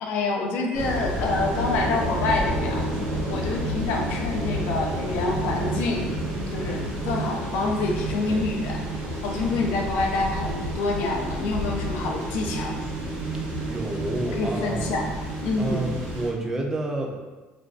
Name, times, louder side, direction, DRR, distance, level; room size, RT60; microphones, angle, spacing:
voice 1, 0.0-2.9 3.3-6.1 6.5-8.9 9.2-12.8 14.4-15.1 15.4-15.9, left 3 dB, 75° left, 1 dB, 0.4 m, -27 dB
sound 1, 0.7-16.3, left 1 dB, 70° right, 0.9 m, -32 dB
sound 2, 1.2-16.3, right 4 dB, 90° right, 0.5 m, -34 dB
voice 2, 13.7-15.0 15.6-17.1, right 2 dB, 15° right, 0 dB, 0.4 m, -29 dB
2.5 x 2.2 x 2.3 m, 1.2 s
cardioid pair, 140°, 3 cm